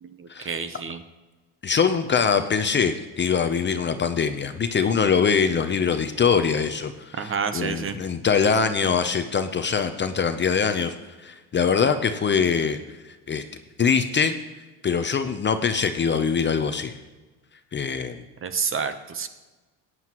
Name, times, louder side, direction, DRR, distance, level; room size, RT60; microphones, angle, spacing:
voice 1, 0.0-1.0 7.1-8.0 18.4-19.3, right 6 dB, 30° right, 10 dB, 0.8 m, -29 dB
voice 2, 1.6-10.9 11.2-12.8 13.0-13.4 13.8-14.4 14.8-16.9 17.7-18.2, left 6 dB, 25° left, 8 dB, 0.6 m, -23 dB
15.5 x 9.4 x 3.0 m, 1.2 s
cardioid pair, 110°, 42 cm